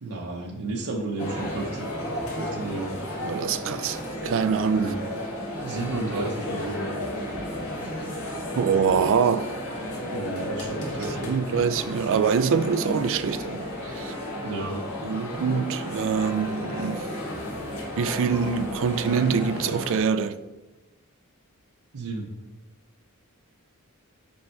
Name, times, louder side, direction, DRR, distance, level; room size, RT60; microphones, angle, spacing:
voice 1, 0.0-1.9 2.4-2.9 4.7-5.0 5.6-6.9 10.1-11.4 14.4-14.8 21.9-22.3, right 2 dB, 85° right, 0.8 m, -32 dB
sound 1, 1.2-20.0, left 1 dB, 70° left, 1.6 m, -33 dB
voice 2, 3.2-4.9 8.6-9.6 11.3-14.1 15.0-17.1 18.0-20.4, right 6 dB, 60° right, 0.4 m, -25 dB
5.5 x 5.5 x 4.5 m
head